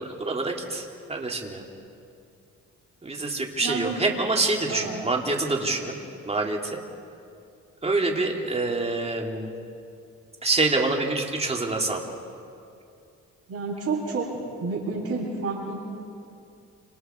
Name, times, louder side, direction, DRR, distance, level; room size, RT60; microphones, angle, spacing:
voice 1, 0.0-1.6 3.0-5.9 6.2-6.8 7.8-9.5 10.4-12.0, right 3 dB, 20° right, 0 dB, 3.2 m, -26 dB
voice 2, 3.6-4.0 4.7-5.0 13.5-14.3 14.6-15.8, right 4 dB, 50° right, -4 dB, 7.6 m, -29 dB
29.5 x 27.0 x 4.7 m, 2.5 s
cardioid pair, 90°, 30 cm